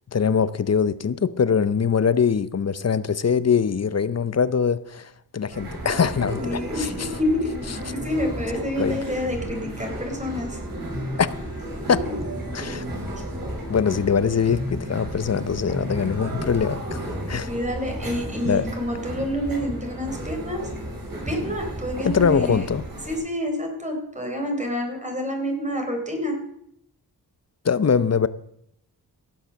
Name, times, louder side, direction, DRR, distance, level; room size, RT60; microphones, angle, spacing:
voice 1, 0.1-7.1 8.8-9.0 11.2-11.3 11.9-12.0 12.5-12.9 13.7-17.0 17.3-17.5 18.4-18.7 22.0-22.8 27.6-28.3, left 6 dB, 40° left, 0.7 m, -22 dB
sound 1, 5.5-23.2, right 1 dB, 60° right, 6.2 m, -33 dB
voice 2, 6.3-7.5 7.9-10.6 11.7-12.2 13.1-13.2 17.5-20.6 21.3-22.7 23.1-26.4, equal, 20° right, 4.1 m, -28 dB
16.5 x 7.0 x 6.4 m
cardioid pair, 70°, 39 cm